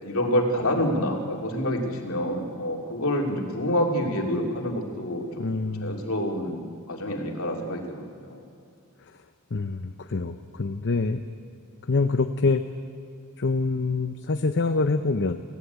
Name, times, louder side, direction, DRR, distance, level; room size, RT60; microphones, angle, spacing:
voice 1, 0.0-5.5 5.8-6.6 6.9-8.4, equal, 70° left, 1 dB, 3.0 m, -27 dB
voice 2, 5.4-6.0 9.5-11.2 11.9-12.7 13.4-15.4, left 3 dB, 55° left, 7 dB, 0.7 m, -25 dB
26.5 x 16.5 x 8.2 m, 2.4 s
head